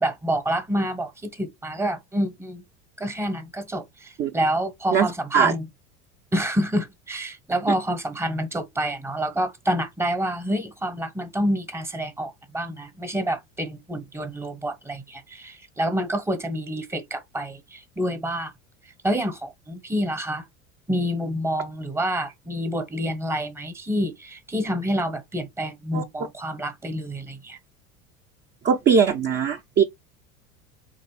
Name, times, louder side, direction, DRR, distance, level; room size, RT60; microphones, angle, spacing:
voice 1, 0.0-2.6 3.0-5.6 6.3-18.5 19.0-20.4 20.9-27.6, equal, 5° right, 0.8 m, -28 dB
voice 2, 4.9-5.5 25.9-26.0 28.6-29.8, right 6 dB, 25° right, 0.5 m, -20 dB
3.9 x 3.0 x 3.0 m
hypercardioid pair, 80°, 42 cm